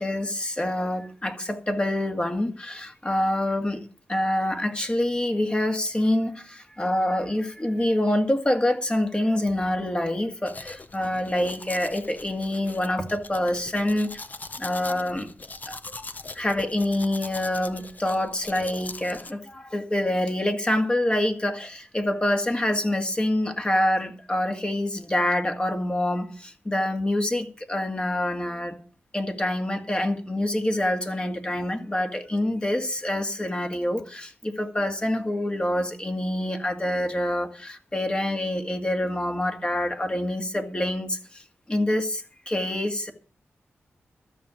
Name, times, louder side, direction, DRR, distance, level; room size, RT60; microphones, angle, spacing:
voice 1, 0.0-3.8 4.1-14.2 14.6-15.3 15.7-16.1 16.3-28.8 29.1-43.1, left 1 dB, 25° left, 2.1 m, -26 dB
Domestic sounds home sounds, 10.5-19.3, left 3 dB, 40° left, 1.0 m, -41 dB
13.0 x 6.5 x 8.6 m
cardioid pair, 70°, 4 cm